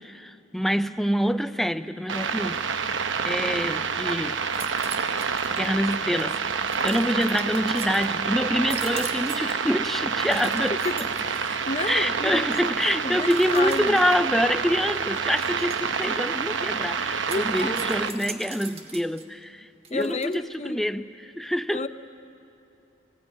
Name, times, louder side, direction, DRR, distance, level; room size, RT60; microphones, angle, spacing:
voice 1, 0.0-2.9 3.2-4.4 5.5-6.4 6.8-10.8 11.9-21.9, equal, ahead, 11 dB, 0.4 m, -26 dB
sound 1, 2.1-18.1, right 5 dB, 75° right, 0.9 m, -28 dB
sound 2, 4.1-4.2 4.4-5.7 6.2-8.1 8.6-9.7 10.1-12.0 12.5-12.7 13.3-14.3 15.2-16.1 17.2-19.3 19.8-20.4, right 5 dB, 30° right, 1.4 m, -41 dB
voice 2, 11.3-12.4 13.0-14.0 17.2-17.9 19.9-20.8 21.7-21.9, left 3 dB, 35° left, 10 dB, 0.8 m, -31 dB
25.0 x 16.5 x 9.1 m, 2.8 s
head